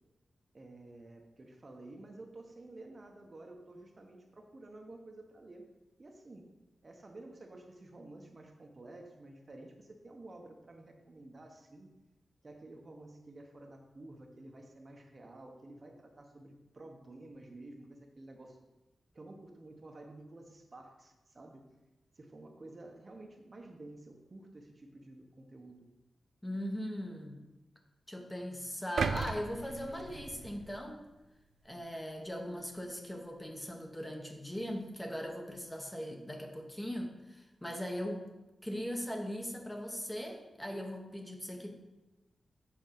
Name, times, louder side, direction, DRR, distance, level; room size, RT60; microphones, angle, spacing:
voice 1, 0.5-5.6 6.0-6.5 6.8-11.9 12.4-18.6 19.1-21.6 22.1-25.9, right 2 dB, 35° right, 3 dB, 0.9 m, -51 dB
voice 2, 26.4-27.4 28.1-31.0 31.6-38.3 38.6-41.7, equal, 10° left, 2 dB, 0.9 m, -39 dB
sound 1, 29.0-31.1 31.6-31.8, right 5 dB, 70° right, 0.4 m, -36 dB
7.4 x 4.2 x 5.8 m, 1.0 s
wide cardioid pair, 140°, 0 cm